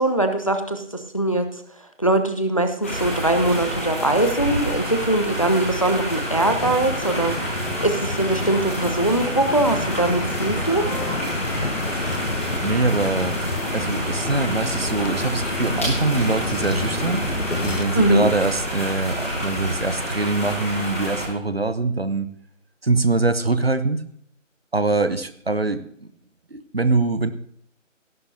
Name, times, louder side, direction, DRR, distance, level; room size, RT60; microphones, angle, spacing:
voice 1, 0.0-1.5 2.0-7.4 7.8-10.9 17.9-18.3, right 1 dB, 25° left, 7 dB, 0.8 m, -21 dB
sound 1, 2.8-21.2, equal, 10° left, 1.5 m, -28 dB
sound 2, 6.3-17.8, left 3 dB, 70° left, 1.3 m, -30 dB
sound 3, 9.5-19.8, right 2 dB, 20° right, 3.0 m, -40 dB
voice 2, 12.6-13.4 13.7-17.3 17.6-22.3 22.8-24.0 24.7-26.1 26.5-27.3, right 3 dB, 50° right, 11 dB, 1.0 m, -23 dB
18.0 x 11.0 x 2.8 m, 0.66 s
figure-of-eight pair, 160°, 39 cm